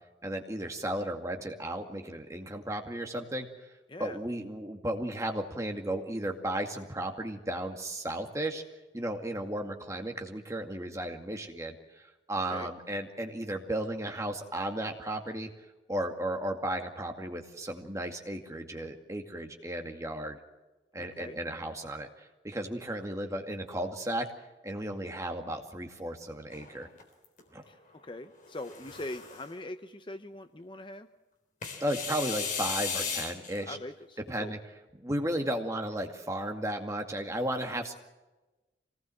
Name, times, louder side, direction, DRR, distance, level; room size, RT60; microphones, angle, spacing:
voice 1, 0.2-3.7 4.0-8.6 8.9-15.5 15.9-20.4 20.9-24.3 24.6-26.9 27.5-27.6 31.8-33.8 34.3-34.6 34.9-37.9, right 1 dB, 15° right, 3 dB, 2.2 m, -34 dB
voice 2, 3.9-4.2 12.3-12.7 21.0-21.4 27.7-31.1 33.6-34.6, left 2 dB, 25° left, 9 dB, 0.8 m, -42 dB
sound 1, 26.5-27.4 28.4-29.5 31.6-33.6, left 6 dB, 45° left, 3.7 m, -36 dB
25.0 x 19.0 x 7.8 m, 1.1 s
head